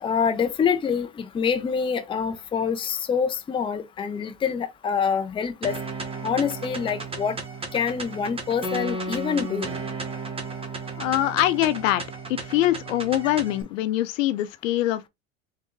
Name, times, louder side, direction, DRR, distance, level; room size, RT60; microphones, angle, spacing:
voice 1, 0.0-5.7 6.2-7.4 7.7-9.7, left 6 dB, 10° left, 0.6 m, -26 dB
sound 1, 5.6-13.6, right 3 dB, 15° right, 1.1 m, -34 dB
voice 2, 11.0-12.0 12.3-15.1, left 14 dB, 65° left, 0.6 m, -23 dB
3.8 x 3.3 x 3.1 m
hypercardioid pair, 115°, 42 cm